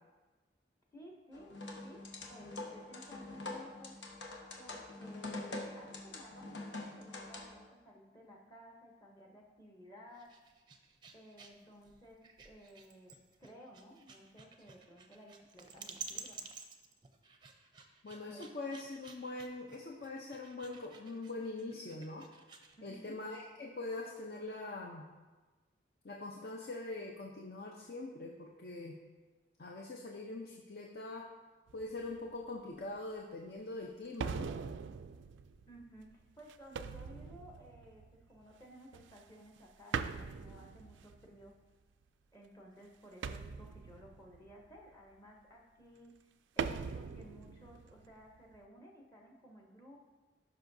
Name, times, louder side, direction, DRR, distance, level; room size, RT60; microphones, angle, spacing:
voice 1, 0.9-3.9 4.6-10.5 11.1-16.4 18.3-18.5 22.8-23.2 35.7-41.5 42.3-46.1 46.5-50.0, equal, 15° left, 0 dB, 0.7 m, -56 dB
sound 1, 1.3-7.6, left 2 dB, 80° left, 1.0 m, -45 dB
sound 2, 10.1-22.8, right 5 dB, 25° right, 0.5 m, -52 dB
voice 2, 18.0-22.3 22.8-25.0 26.0-28.9 29.6-31.3 31.7-34.5, left 2 dB, 60° left, 0 dB, 0.6 m, -43 dB
sound 3, 31.7-32.3 33.0-33.1 34.2-38.5 38.9-39.6 39.9-41.5 43.2-44.9 46.6-48.6, right 5 dB, 85° right, 0.3 m, -42 dB
13.0 x 5.8 x 2.7 m, 1.2 s
head